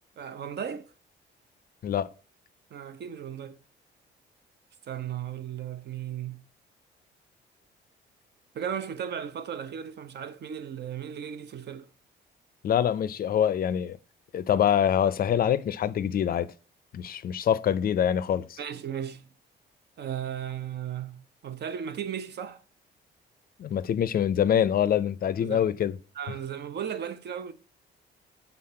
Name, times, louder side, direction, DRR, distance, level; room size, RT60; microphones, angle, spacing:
voice 1, 0.2-0.9 2.7-3.6 4.9-6.4 8.5-11.9 18.6-19.3 20.0-22.6 25.4-25.6 26.1-27.5, right 9 dB, 55° right, 0.6 m, -36 dB
voice 2, 12.6-14.0 14.3-16.5 16.9-18.6 23.6-26.0, left 9 dB, 50° left, 0.4 m, -25 dB
5.7 x 4.0 x 4.3 m
cardioid pair, 90°, 20 cm